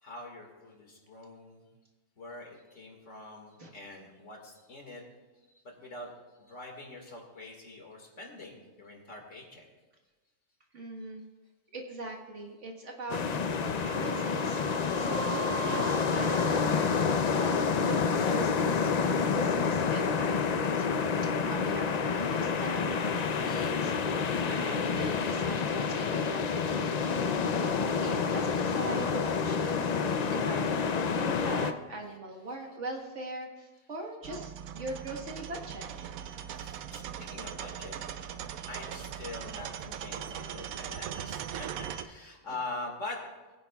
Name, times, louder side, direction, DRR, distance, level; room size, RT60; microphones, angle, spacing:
voice 1, 0.0-1.6 2.2-5.0 5.6-6.1 6.4-9.6 32.0-33.4 33.7-34.1 34.4-34.9 35.2-35.3 36.2-38.0 38.7-43.2, left 2 dB, 60° left, 1 dB, 2.2 m, -46 dB
voice 2, 10.7-11.2 11.7-24.0 24.5-35.9, right 2 dB, 60° right, 1 dB, 1.8 m, -41 dB
sound 1, 13.1-31.7, left 5 dB, 80° left, 0.3 m, -28 dB
Wind instrument woodwind instrument, 13.8-17.7, right 6 dB, 40° right, 1.9 m, -40 dB
sound 2, 34.2-42.1, right 9 dB, 85° right, 1.1 m, -40 dB
21.0 x 9.6 x 2.3 m, 1.2 s
omnidirectional pair, 1.4 m